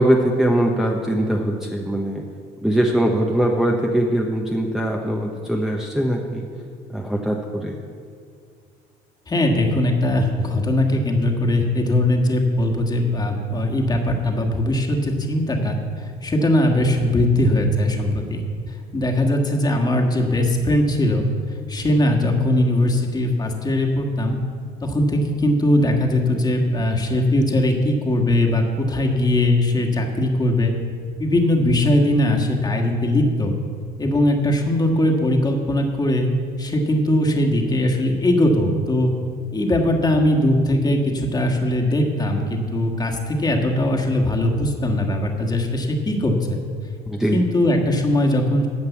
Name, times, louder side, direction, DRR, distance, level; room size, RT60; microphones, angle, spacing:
voice 1, 0.0-2.2 2.6-6.4 6.9-7.8 47.1-47.4, right 1 dB, ahead, -1 dB, 0.9 m, -21 dB
voice 2, 9.3-18.4 18.9-24.4 24.8-30.7 31.2-33.5 34.0-36.3 36.6-39.1 39.5-46.6 47.3-48.7, left 1 dB, 25° left, 2 dB, 1.6 m, -20 dB
13.0 x 5.4 x 8.3 m, 2.2 s
cardioid pair, 110°, 17 cm